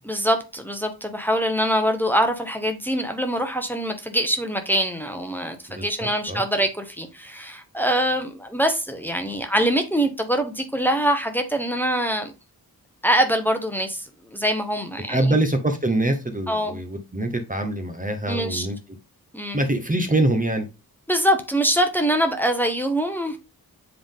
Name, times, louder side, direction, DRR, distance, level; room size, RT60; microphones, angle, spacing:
voice 1, 0.0-12.3 13.0-15.4 16.5-16.8 18.3-18.7 19.3-19.6 21.1-23.4, equal, 5° left, 1.1 m, -24 dB
voice 2, 5.7-6.4 15.1-18.8 19.5-20.7, right 1 dB, 20° right, 1.0 m, -24 dB
7.7 x 3.6 x 3.7 m
wide cardioid pair, 75°, 38 cm